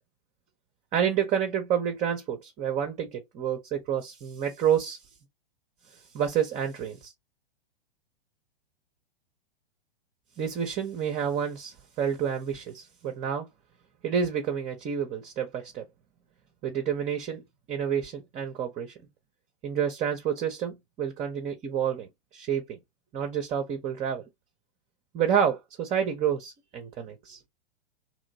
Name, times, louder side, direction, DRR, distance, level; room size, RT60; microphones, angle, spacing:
voice 1, 0.9-5.0 5.9-7.1 10.4-13.5 14.0-15.8 16.6-17.4 17.7-18.9 19.6-22.8 23.1-24.2 25.1-27.4, right 8 dB, 20° right, 0.6 m, -29 dB
3.0 x 2.8 x 2.7 m
figure-of-eight pair, 110°, 30 cm